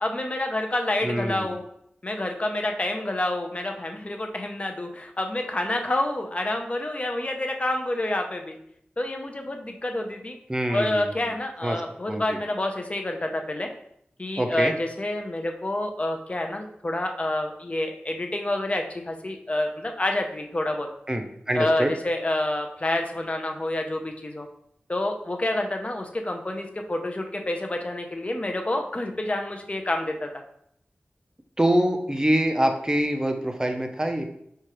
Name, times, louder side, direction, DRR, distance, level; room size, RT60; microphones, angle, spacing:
voice 1, 0.0-1.6 2.0-8.6 9.0-10.4 10.7-13.7 14.2-20.9 21.5-24.5 24.9-30.3, left 1 dB, 35° left, 3 dB, 0.5 m, -28 dB
voice 2, 1.0-1.5 10.5-11.3 11.6-11.8 12.1-12.4 14.4-14.7 21.1-21.9 31.6-34.3, right 1 dB, 20° right, 5 dB, 0.5 m, -25 dB
4.5 x 2.4 x 2.9 m, 0.72 s
wide cardioid pair, 55°, 4 cm